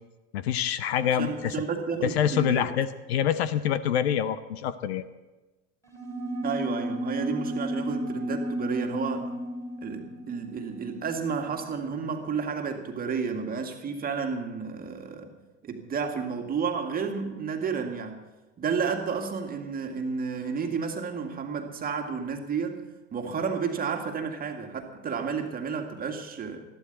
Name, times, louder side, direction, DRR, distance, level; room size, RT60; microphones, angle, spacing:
voice 1, 0.3-1.5 2.0-5.0, left 9 dB, 55° left, 14 dB, 0.9 m, -26 dB
voice 2, 1.0-2.7 6.4-9.3 9.8-15.3 15.6-18.2 18.6-22.8 23.1-26.6, right 5 dB, 25° right, 5 dB, 2.0 m, -31 dB
sound 1, 5.9-11.8, equal, 10° left, 4.0 m, -33 dB
20.5 x 14.5 x 4.1 m, 1.1 s
figure-of-eight pair, 85°, 38 cm